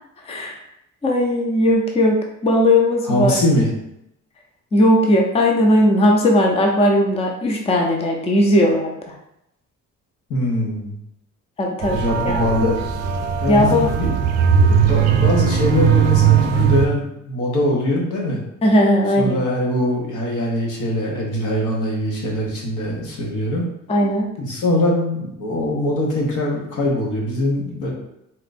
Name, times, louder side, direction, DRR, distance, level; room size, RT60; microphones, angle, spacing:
voice 1, 0.3-0.6 1.0-3.4 4.7-9.1 11.6-12.0 12.2-12.8 13.5-13.9 18.6-19.4 23.9-24.3, left 1 dB, 20° left, 1 dB, 0.5 m, -17 dB
voice 2, 3.0-3.7 10.3-11.0 11.9-12.8 13.4-18.4 19.2-23.7 24.4-27.9, left 1 dB, 75° left, -2 dB, 1.4 m, -22 dB
sound 1, 11.8-16.9, right 8 dB, 55° right, 0.6 m, -18 dB
4.2 x 2.6 x 4.1 m, 0.81 s
cardioid pair, 140°, 31 cm